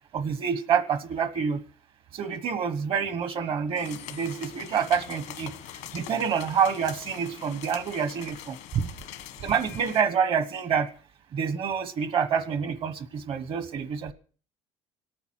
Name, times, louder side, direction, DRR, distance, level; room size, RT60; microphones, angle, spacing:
voice 1, 0.1-1.6 2.1-5.5 5.9-8.9 9.4-10.9 11.3-14.1, right 7 dB, 45° right, 13 dB, 1.1 m, -27 dB
sound 1, 3.8-10.0, left 12 dB, 90° left, 1.3 m, -43 dB
26.5 x 9.1 x 4.5 m, 0.42 s
cardioid pair, 155°, 12 cm